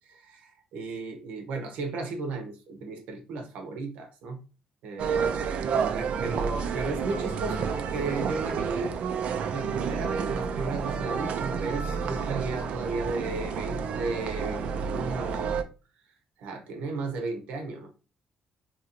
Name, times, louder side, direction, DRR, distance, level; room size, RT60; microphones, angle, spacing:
voice 1, 0.1-4.4 4.8-5.2 5.9-8.9 9.5-15.6 16.4-17.9, right 3 dB, 85° right, 5 dB, 0.8 m, -34 dB
sound 1, 5.0-15.6, right 6 dB, 60° right, 0.3 m, -30 dB
3.0 x 2.7 x 2.8 m, 0.33 s
cardioid pair, 150°, 2 cm